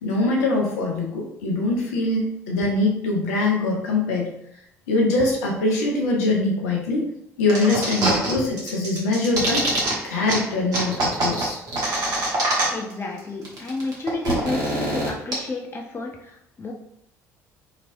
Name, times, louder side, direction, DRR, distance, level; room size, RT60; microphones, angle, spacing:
voice 1, 0.0-4.3 4.9-7.1 7.4-9.6 10.0-11.6, left 2 dB, 70° left, -1 dB, 0.7 m, -23 dB
sound 1, 7.5-8.3 8.6-9.9 10.3-10.4 10.7-12.9 13.2-13.3 13.5-15.3, right 1 dB, 50° right, 1.1 m, -24 dB
voice 2, 12.7-16.7, left 3 dB, 25° left, 0 dB, 0.6 m, -31 dB
3.0 x 2.9 x 2.6 m, 0.77 s
figure-of-eight pair, 55°, 8 cm